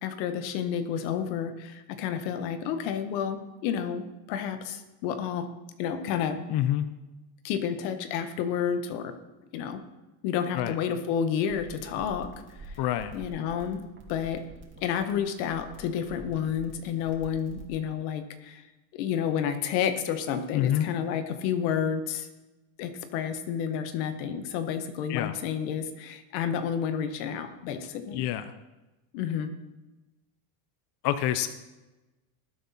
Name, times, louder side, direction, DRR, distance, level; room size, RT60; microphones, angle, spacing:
voice 1, 0.0-5.5 5.8-6.4 7.4-9.1 9.5-9.8 10.2-12.3 12.6-12.8 13.1-14.4 14.8-18.6 18.9-22.3 22.8-28.2 29.1-29.5, left 8 dB, 90° left, 9 dB, 1.5 m, -30 dB
voice 2, 6.5-6.9 10.5-10.7 12.8-13.1 20.5-20.9 25.1-25.3 28.1-28.4 31.0-31.5, left 12 dB, 55° left, 11 dB, 0.8 m, -27 dB
Boiling Liquid, 11.4-17.7, right 3 dB, 25° right, 2.8 m, -47 dB
19.0 x 8.3 x 4.3 m, 1.1 s
cardioid pair, 125°, 50 cm